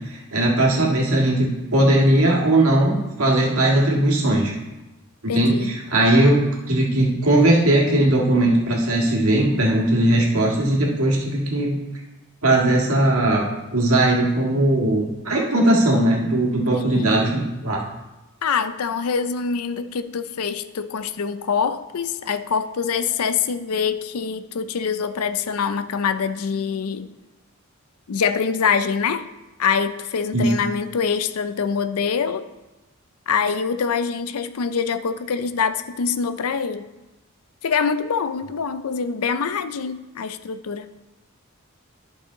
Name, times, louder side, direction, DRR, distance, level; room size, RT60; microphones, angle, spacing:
voice 1, 0.1-4.5 5.2-11.8 12.4-13.4 13.7-17.8 30.3-30.5, right 1 dB, 85° right, -2 dB, 1.8 m, -19 dB
voice 2, 5.3-5.7 16.7-17.2 18.4-27.1 28.1-29.3 29.6-32.5 33.3-36.9 37.6-40.9, left 6 dB, 90° left, 12 dB, 0.5 m, -24 dB
11.0 x 5.5 x 3.9 m, 1.1 s
head